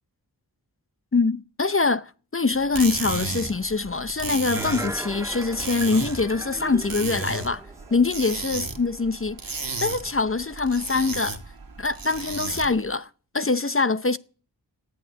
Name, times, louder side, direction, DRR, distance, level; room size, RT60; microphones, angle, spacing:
voice 1, 1.1-7.6 7.9-9.4 9.8-11.4 11.8-13.1 13.3-14.2, left 3 dB, 30° left, 0.7 m, -24 dB
sound 1, 2.5-12.9, right 3 dB, 55° right, 2.0 m, -34 dB
sound 2, 4.5-8.3 8.7-8.8, right 1 dB, 5° right, 1.4 m, -37 dB
14.0 x 8.5 x 9.8 m
wide cardioid pair, 50°, 41 cm